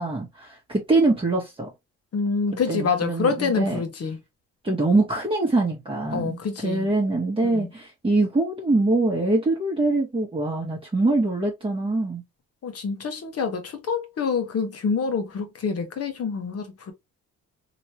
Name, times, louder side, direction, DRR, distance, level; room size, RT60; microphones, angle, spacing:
voice 1, 0.0-1.7 2.7-3.8 4.6-12.2, right 2 dB, 20° right, 1.1 m, -23 dB
voice 2, 2.1-4.2 6.1-6.9 7.4-7.7 12.6-16.9, left 5 dB, 50° left, 1.2 m, -27 dB
3.1 x 3.0 x 2.9 m
cardioid pair, 90°, 30 cm